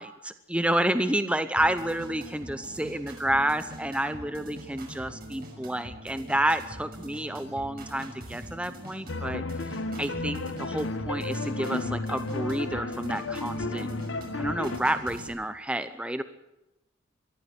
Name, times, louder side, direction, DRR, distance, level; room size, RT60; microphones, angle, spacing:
voice 1, 0.0-13.9 14.3-16.2, right 1 dB, 5° right, 10 dB, 0.7 m, -30 dB
sound 1, 1.6-15.3, right 1 dB, 50° right, 6.0 m, -43 dB
sound 2, 9.1-14.8, left 2 dB, 75° left, 1.0 m, -33 dB
22.5 x 14.5 x 8.2 m, 0.94 s
head